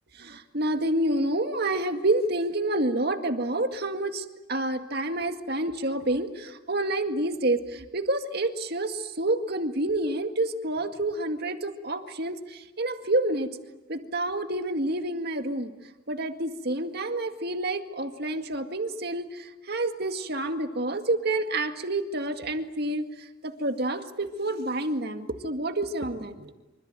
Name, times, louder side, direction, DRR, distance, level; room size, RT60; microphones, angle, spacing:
voice 1, 0.2-13.5 13.9-15.7 16.1-23.0 23.4-26.5, right 2 dB, 55° right, 6 dB, 2.1 m, -28 dB
25.5 x 25.5 x 9.1 m, 1.1 s
head